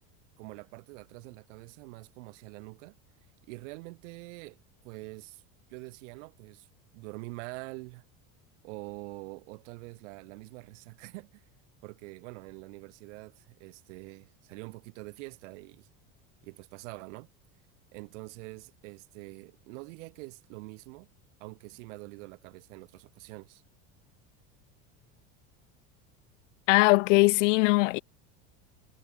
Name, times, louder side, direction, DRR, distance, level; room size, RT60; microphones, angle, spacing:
voice 1, 0.4-3.0 3.5-4.6 4.8-5.4 5.7-6.7 6.9-8.0 8.6-11.4 11.8-15.9 16.4-17.3 17.9-21.1 21.4-23.6, right 26 dB, 75° right, 3.4 m, -45 dB
voice 2, 26.7-28.0, left 26 dB, 90° left, 0.7 m, -21 dB
cardioid pair, 165°, 36 cm